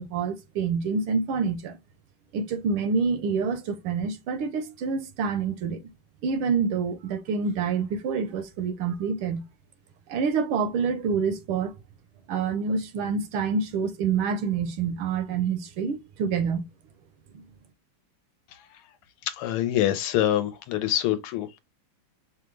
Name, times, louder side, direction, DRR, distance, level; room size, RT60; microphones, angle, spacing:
voice 1, 0.0-1.8 2.3-5.8 6.2-9.4 10.1-11.7 12.3-16.7 17.3-17.4, right 5 dB, 75° right, 1.5 m, -27 dB
voice 2, 19.4-21.6, left 12 dB, 85° left, 1.6 m, -25 dB
5.5 x 2.1 x 3.2 m
omnidirectional pair, 2.4 m